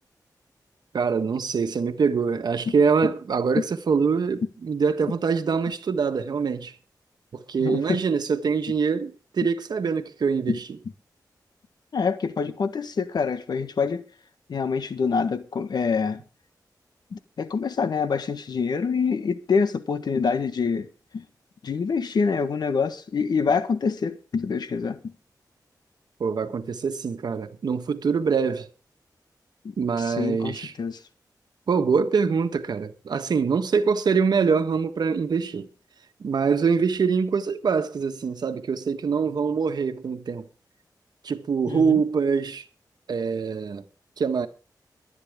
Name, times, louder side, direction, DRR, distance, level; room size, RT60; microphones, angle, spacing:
voice 1, 0.9-6.7 7.3-10.6 26.2-28.7 29.8-30.7 31.7-35.7 36.2-40.4 41.2-42.6 43.1-43.8 44.2-44.5, right 5 dB, 70° right, 1.4 m, -24 dB
voice 2, 7.6-8.0 10.5-10.6 11.9-14.0 14.5-16.2 17.1-20.9 21.1-21.2 21.6-25.1 29.6-31.0 41.7-42.0, left 5 dB, 70° left, 1.5 m, -26 dB
23.0 x 9.4 x 3.7 m
wide cardioid pair, 125°, 7 cm